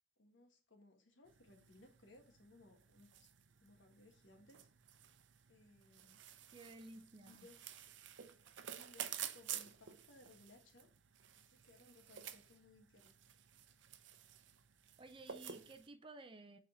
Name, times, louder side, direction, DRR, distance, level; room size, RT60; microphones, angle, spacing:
voice 1, 0.2-3.3 3.6-4.7 5.5-6.2 7.2-7.9 8.7-10.9 11.3-13.1, left 2 dB, 75° left, 1.7 m, -64 dB
sound 1, 1.3-15.9, right 10 dB, 65° right, 0.6 m, -52 dB
voice 2, 6.5-7.5 15.0-16.6, right 2 dB, 25° right, 0.5 m, -55 dB
6.3 x 4.1 x 4.3 m
head